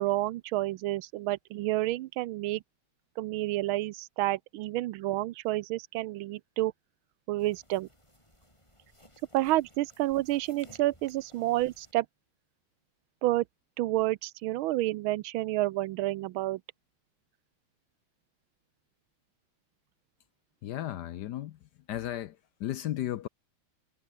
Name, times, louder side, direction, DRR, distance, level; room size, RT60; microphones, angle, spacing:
voice 1, 0.0-2.6 3.2-6.7 7.3-7.9 9.3-12.1 13.2-13.4 13.8-16.6, right 16 dB, 85° right, 1.5 m, -29 dB
sound 1, 7.4-11.9, left 1 dB, 15° left, 7.6 m, -58 dB
voice 2, 20.6-21.6 21.9-23.3, left 13 dB, 70° left, 1.1 m, -35 dB
omnidirectional pair, 2.2 m